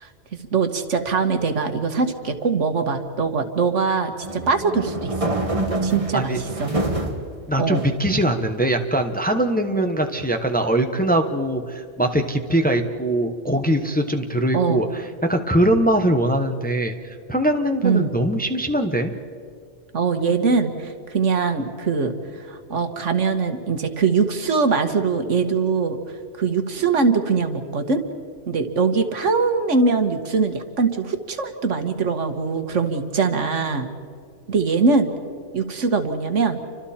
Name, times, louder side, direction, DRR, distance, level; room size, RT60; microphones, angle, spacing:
voice 1, 0.5-5.3 5.8-6.7 7.6-7.8 14.5-14.8 17.8-18.1 19.9-22.1 22.4-26.0 26.4-28.0 28.5-33.9 34.5-35.1 35.5-36.6, right 4 dB, 75° right, 7 dB, 1.7 m, -22 dB
sound 1, 4.2-7.2 7.7-8.6, right 2 dB, 25° right, 1.7 m, -26 dB
voice 2, 7.5-19.1, right 1 dB, 10° left, 5 dB, 1.0 m, -22 dB
29.5 x 25.0 x 4.3 m, 2.3 s
omnidirectional pair, 1.3 m